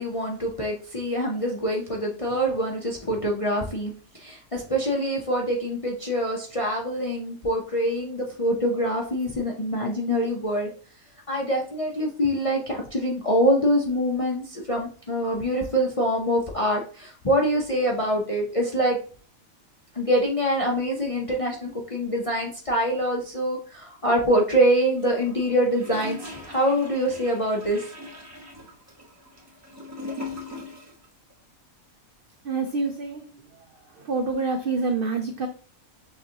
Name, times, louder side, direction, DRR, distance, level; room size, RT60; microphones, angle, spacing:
voice 1, 0.0-10.7 11.3-19.0 19.9-27.9, equal, 45° left, -1 dB, 0.4 m, -25 dB
Gurgling / Toilet flush, 25.0-31.0 31.3-31.4, left 2 dB, 15° right, 1.0 m, -40 dB
voice 2, 32.4-35.5, right 4 dB, 75° right, 5 dB, 0.5 m, -28 dB
6.3 x 2.5 x 2.8 m, 0.41 s
omnidirectional pair, 1.5 m